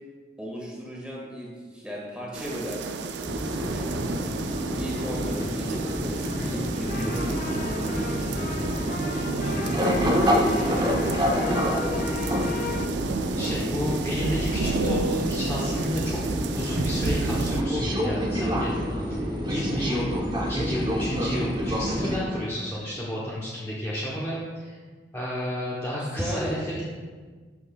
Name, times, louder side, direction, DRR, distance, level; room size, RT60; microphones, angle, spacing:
voice 1, 0.4-4.3 4.8-12.6 26.0-26.6, equal, 5° right, -4 dB, 1.7 m, -37 dB
sound 1, 2.3-17.6, right 4 dB, 75° right, 0.4 m, -32 dB
sound 2, 3.2-22.2, equal, 25° right, 0.9 m, -28 dB
sound 3, 5.0-12.9, left 4 dB, 45° left, 0.4 m, -37 dB
voice 2, 6.9-7.3 9.5-9.9 13.4-16.2 16.5-20.1 20.5-24.8 25.1-26.8, equal, 15° left, -7 dB, 0.9 m, -31 dB
11.0 x 6.2 x 2.3 m, 1.5 s
head